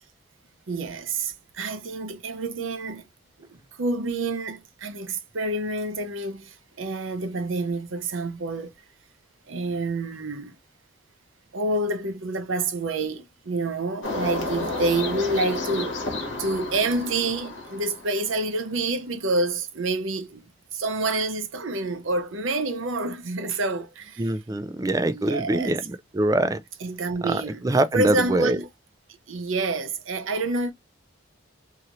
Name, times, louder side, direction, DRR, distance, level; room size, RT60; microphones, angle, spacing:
voice 1, 0.7-3.0 3.4-3.5 3.8-8.7 9.5-10.6 11.5-15.9 16.4-20.4 20.7-24.3 25.1-25.8 26.8-27.6 27.9-28.7 29.3-30.7, right 2 dB, 75° right, 0.7 m, -28 dB
sound 1, 14.0-18.4, left 2 dB, 65° left, 1.1 m, -31 dB
voice 2, 24.2-26.6 27.2-28.6, right 1 dB, 15° right, 0.3 m, -24 dB
2.9 x 2.8 x 2.5 m
head